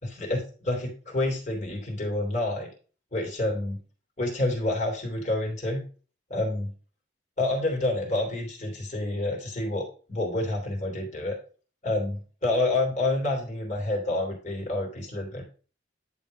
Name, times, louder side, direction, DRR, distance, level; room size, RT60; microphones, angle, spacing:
voice 1, 0.0-2.7 3.1-3.8 4.2-5.8 6.3-6.7 7.4-11.4 11.8-15.4, left 2 dB, 40° left, 0 dB, 3.0 m, -28 dB
10.5 x 3.7 x 5.2 m, 0.39 s
head